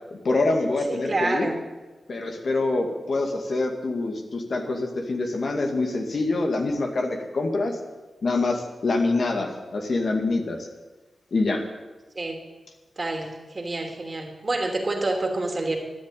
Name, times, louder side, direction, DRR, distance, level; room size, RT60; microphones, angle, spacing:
voice 1, 0.2-1.5 2.1-7.8 8.2-10.7 11.3-11.6, left 2 dB, 60° left, 3 dB, 2.2 m, -25 dB
voice 2, 0.9-1.6 12.1-12.4 13.0-15.8, right 2 dB, 40° right, 2 dB, 2.8 m, -28 dB
12.5 x 10.5 x 9.2 m, 1.2 s
cardioid pair, 65°, 0 cm